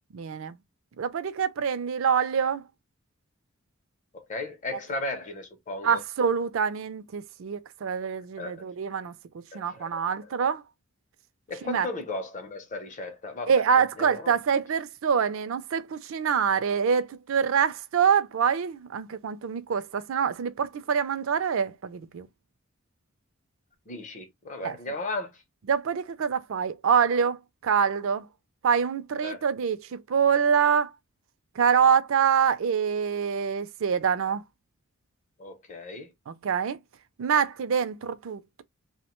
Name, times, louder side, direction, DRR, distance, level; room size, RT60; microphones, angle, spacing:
voice 1, 0.1-0.6 1.0-2.7 5.8-9.1 9.5-10.6 11.7-11.9 13.5-22.3 24.6-24.8 25.7-28.3 28.6-30.9 31.6-34.4 36.3-36.8 37.2-38.6, right 7 dB, 70° right, 0.4 m, -25 dB
voice 2, 4.1-6.0 8.4-8.7 9.5-10.3 11.5-13.5 14.0-14.4 23.9-25.4 29.2-29.4 35.4-36.1, left 2 dB, 35° left, 0.7 m, -36 dB
2.7 x 2.1 x 2.9 m
head